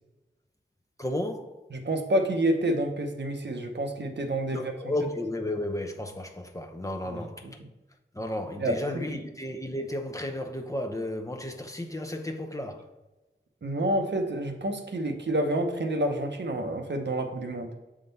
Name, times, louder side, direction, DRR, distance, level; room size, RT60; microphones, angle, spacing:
voice 1, 1.0-1.6 4.5-7.6 8.1-12.9, left 1 dB, 15° left, 0.7 m, -33 dB
voice 2, 1.7-4.7 7.0-7.5 8.6-8.8 9.1-9.2 13.6-17.7, right 1 dB, 65° right, 0.8 m, -28 dB
6.5 x 3.8 x 4.0 m
wide cardioid pair, 50°, 20 cm